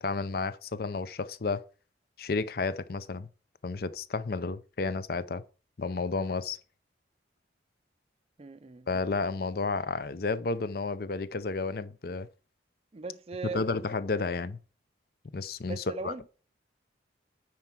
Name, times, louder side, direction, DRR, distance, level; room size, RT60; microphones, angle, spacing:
voice 1, 0.0-1.6 2.2-3.3 3.6-5.4 5.8-6.6 8.9-12.3 13.5-14.6 15.3-16.1, left 3 dB, 55° left, 0.5 m, -31 dB
voice 2, 8.4-8.9 12.9-13.6 14.2-14.3 15.6-16.3, right 4 dB, 35° right, 0.4 m, -39 dB
9.4 x 4.5 x 5.8 m
head